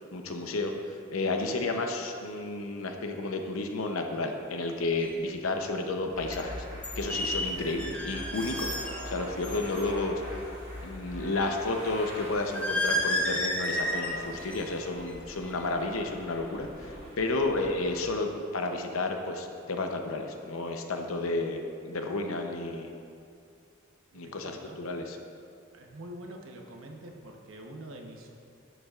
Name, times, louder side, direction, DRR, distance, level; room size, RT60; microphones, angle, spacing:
voice 1, 0.1-6.7 7.0-10.2 10.8-22.9 24.1-25.2, left 2 dB, 80° left, 4 dB, 0.8 m, -32 dB
sound 1, 5.0-5.1 6.3-6.4 6.8-9.1 9.4-9.8 12.5-14.1 14.4-14.7 15.1-15.4, left 1 dB, 5° left, 0.7 m, -31 dB
sound 2, 6.1-18.0, equal, 35° right, 1.9 m, -43 dB
voice 2, 24.1-24.8 25.7-28.3, right 1 dB, 70° right, 1 dB, 1.0 m, -45 dB
10.5 x 7.9 x 2.4 m, 2.4 s
head